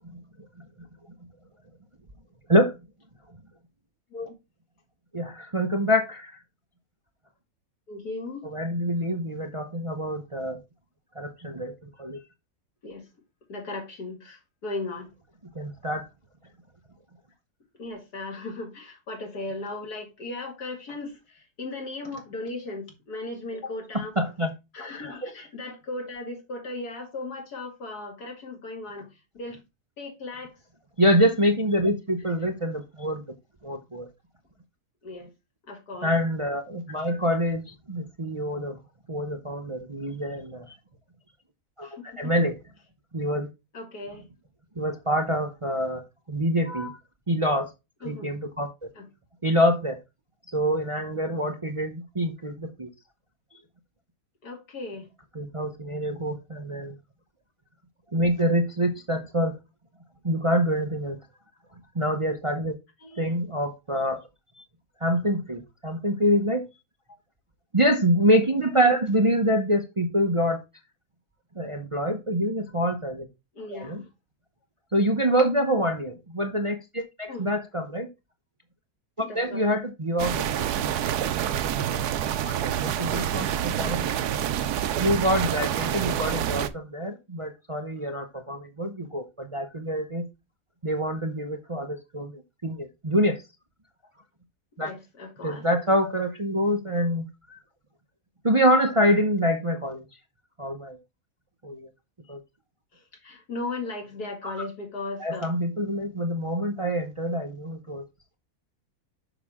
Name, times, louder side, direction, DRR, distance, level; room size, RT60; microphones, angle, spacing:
voice 1, 5.1-6.4 8.4-10.6 11.1-11.7 12.0-12.2 15.5-16.1 24.2-24.5 25.2-25.3 31.0-33.2 33.6-34.1 36.0-38.8 39.1-40.7 41.8-42.6 43.1-43.5 44.8-47.0 47.3-47.7 48.0-48.9 49.4-50.0 50.5-52.9 55.3-57.0 58.1-59.6 60.2-61.2 61.9-62.8 63.2-64.2 65.0-66.6 67.7-70.6 71.6-73.3 73.7-74.0 74.9-78.1 79.2-80.4 81.9-82.0 82.4-84.2 85.0-90.2 90.8-93.4 94.8-94.9 95.4-97.6 98.4-100.1 100.6-101.0 101.6-101.9 102.3-102.4 104.4-104.6 105.2-108.0, equal, 30° right, 0.6 m, -26 dB
voice 2, 7.9-8.5 12.8-13.0 13.5-15.1 17.8-24.1 24.7-29.1 29.3-29.6 30.0-30.5 35.0-35.3 35.7-36.1 37.1-37.2 41.8-42.3 43.7-44.3 48.0-48.3 49.0-49.1 54.4-55.1 63.0-63.3 73.5-74.1 77.3-77.5 79.2-79.6 82.5-82.7 94.8-95.6 102.9-105.6, left 2 dB, 80° left, 2.7 m, -37 dB
sound 1, 80.2-86.7, right 10 dB, 85° right, 1.2 m, -27 dB
7.0 x 6.0 x 3.6 m
omnidirectional pair, 1.6 m